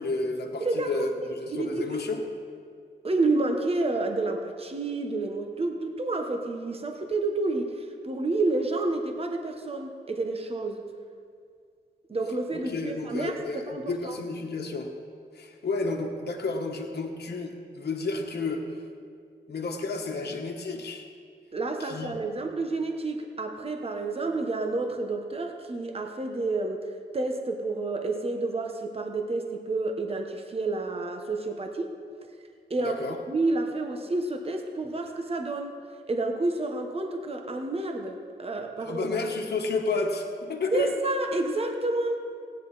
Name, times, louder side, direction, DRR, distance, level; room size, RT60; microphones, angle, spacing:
voice 1, 0.0-2.2 12.5-14.9 15.3-18.6 19.5-21.0 21.8-22.2 32.8-33.2 38.8-40.9, left 3 dB, 60° left, 1 dB, 1.3 m, -31 dB
voice 2, 0.6-0.9 1.5-1.9 3.0-10.9 12.1-14.2 21.5-26.8 27.1-31.9 32.7-33.0 33.3-35.8 36.1-39.1 40.7-42.2, right 2 dB, 30° right, 4 dB, 1.1 m, -29 dB
16.5 x 9.7 x 4.1 m, 2.2 s
cardioid pair, 80°, 18 cm